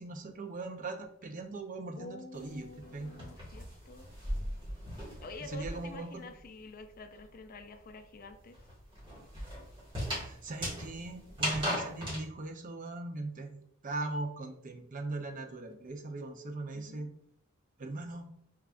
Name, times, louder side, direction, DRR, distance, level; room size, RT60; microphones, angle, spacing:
voice 1, 0.0-3.1 5.5-6.2 10.2-17.1 17.8-18.3, right 2 dB, 40° right, 4 dB, 0.5 m, -40 dB
voice 2, 2.0-4.1 5.2-8.6 16.7-17.1, left 3 dB, 45° left, 8 dB, 0.4 m, -48 dB
sound 1, 2.3-6.1 6.4-12.2, equal, 25° right, 1.7 m, -38 dB
4.7 x 3.5 x 2.4 m, 0.70 s
head